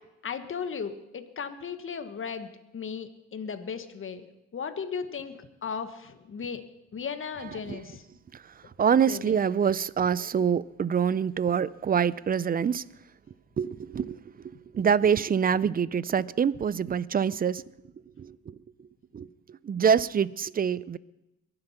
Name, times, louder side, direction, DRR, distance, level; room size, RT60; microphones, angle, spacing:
voice 1, 0.2-4.3 4.5-6.6 6.9-8.0 9.1-9.3, left 6 dB, 45° left, 1.5 m, -36 dB
voice 2, 8.8-12.8 13.6-14.2 14.7-17.6 18.2-18.3 19.1-19.3 19.6-21.0, right 7 dB, 30° right, 0.5 m, -25 dB
22.5 x 7.9 x 5.8 m
cardioid pair, 90°, 30 cm